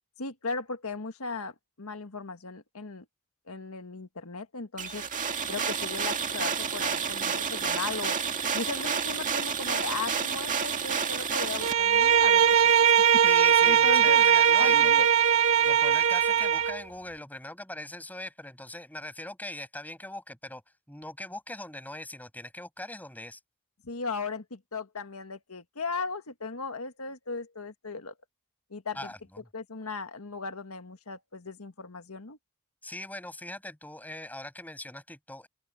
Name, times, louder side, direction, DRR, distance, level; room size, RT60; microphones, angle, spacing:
voice 1, 0.2-3.0 3.5-5.0 5.5-8.2 8.5-12.7 13.0-13.2 13.6-14.3 14.6-15.1 23.8-28.1 28.7-29.1 29.5-32.4, left 3 dB, 80° left, 1.7 m, -37 dB
sound 1, 4.8-11.7, right 6 dB, 35° right, 2.1 m, -30 dB
Bowed string instrument, 11.6-16.8, right 9 dB, 70° right, 1.2 m, -20 dB
voice 2, 13.2-15.1 15.6-20.6 20.9-23.4 28.9-29.2 32.8-35.5, left 1 dB, 10° left, 6.9 m, -41 dB
open air
head